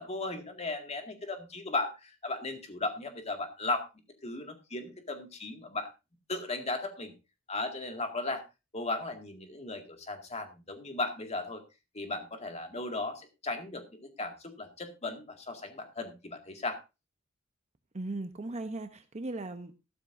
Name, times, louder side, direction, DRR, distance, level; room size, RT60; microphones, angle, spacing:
voice 1, 0.0-3.9 4.2-5.9 6.3-7.1 7.5-8.4 8.7-11.6 11.9-16.8, left 2 dB, 30° left, 5 dB, 2.0 m, -36 dB
voice 2, 17.9-19.7, right 2 dB, 35° right, 8 dB, 0.8 m, -37 dB
13.5 x 12.5 x 2.6 m, 0.27 s
head